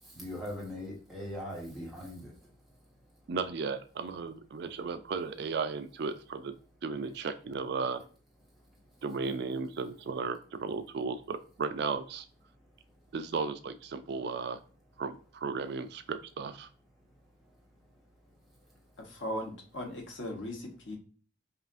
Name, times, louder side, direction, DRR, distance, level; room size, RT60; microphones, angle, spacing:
voice 1, 0.0-2.3, left 1 dB, ahead, 1.4 m, -40 dB
voice 2, 3.3-6.6 6.8-8.0 9.0-12.2 13.1-14.6 15.0-16.7, right 4 dB, 55° right, 0.3 m, -35 dB
voice 3, 19.0-21.0, left 1 dB, 70° left, 1.1 m, -38 dB
5.5 x 2.4 x 2.5 m
head